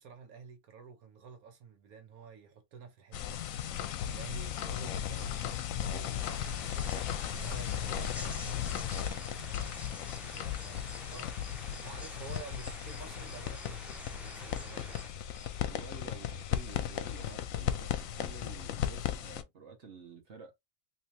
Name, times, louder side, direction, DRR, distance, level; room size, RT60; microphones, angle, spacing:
voice 1, 0.0-3.4 4.1-6.9 7.4-9.6 10.6-10.8 11.1-11.3 11.8-15.0, right 5 dB, 80° right, 1.3 m, -50 dB
sound 1, 3.1-19.4, left 10 dB, 75° left, 1.0 m, -36 dB
sound 2, 3.7-17.4, left 4 dB, 25° left, 1.4 m, -56 dB
sound 3, 6.2-15.1, equal, ahead, 0.5 m, -49 dB
voice 2, 10.2-11.1 11.4-11.5 15.6-20.5, right 5 dB, 55° right, 1.4 m, -51 dB
3.3 x 3.2 x 2.7 m
omnidirectional pair, 1.5 m